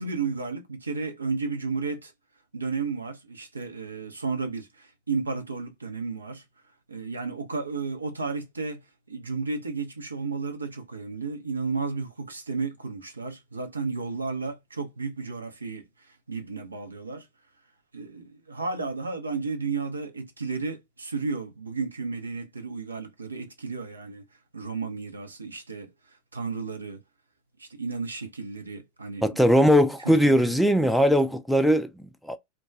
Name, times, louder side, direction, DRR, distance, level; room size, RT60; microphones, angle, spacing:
voice 1, 0.0-2.1 2.5-6.4 6.9-8.8 9.1-15.8 16.3-17.3 17.9-24.3 24.5-25.9 26.3-27.0 27.6-29.7 30.1-30.6, right 4 dB, 75° right, 0.6 m, -33 dB
voice 2, 29.2-32.4, equal, ahead, 0.3 m, -20 dB
2.3 x 2.2 x 2.5 m
figure-of-eight pair, 90°, 0 cm